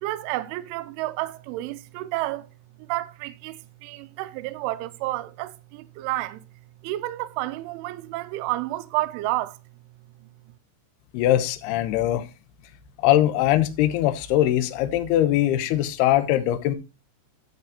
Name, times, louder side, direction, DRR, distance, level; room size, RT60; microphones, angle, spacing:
voice 1, 0.0-2.5 2.9-6.4 6.8-9.6, right 17 dB, 80° right, 3.1 m, -30 dB
voice 2, 11.1-12.3 13.0-16.7, left 13 dB, 75° left, 2.4 m, -21 dB
13.0 x 7.3 x 2.9 m
omnidirectional pair, 5.8 m